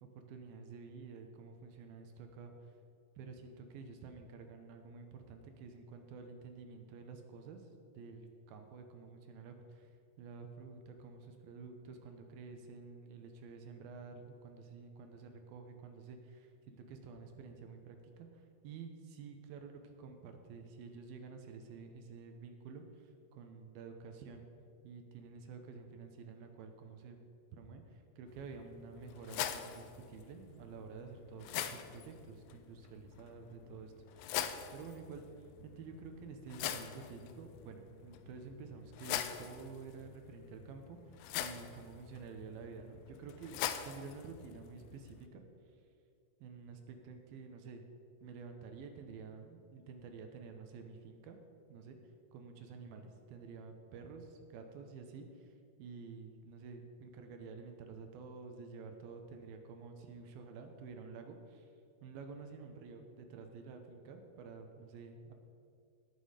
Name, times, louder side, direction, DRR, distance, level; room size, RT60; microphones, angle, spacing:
voice 1, 0.0-2.7 3.2-9.9 10.2-24.5 24.8-27.2 27.5-34.3 34.7-35.2 35.6-41.0 41.4-45.4 46.4-47.8 48.2-51.4 51.7-52.0 52.3-55.5 55.8-61.7 62.0-65.3, right 5 dB, 75° right, 5 dB, 2.6 m, -50 dB
sound 1, 28.3-45.3, left 10 dB, 85° left, 2.0 m, -44 dB
18.5 x 6.2 x 4.9 m, 2.5 s
omnidirectional pair, 4.7 m